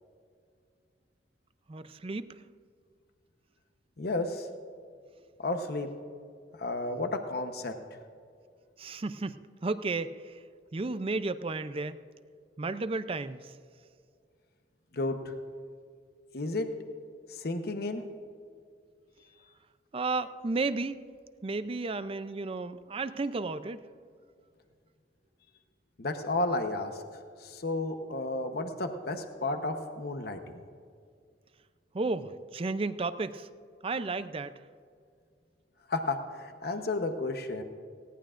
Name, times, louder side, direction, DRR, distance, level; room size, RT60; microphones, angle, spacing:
voice 1, 1.7-2.4 8.8-10.4 10.7-12.0 12.6-13.5 19.9-21.0 21.4-23.8 31.9-33.5 33.8-34.5, right 3 dB, 30° right, 13 dB, 0.5 m, -33 dB
voice 2, 4.0-4.5 5.4-5.9 6.6-7.8 14.9-15.3 16.3-16.7 17.3-18.1 26.0-27.0 27.4-30.4 35.9-37.6, left 2 dB, 60° left, 6 dB, 0.9 m, -32 dB
19.5 x 17.5 x 2.5 m, 2.2 s
head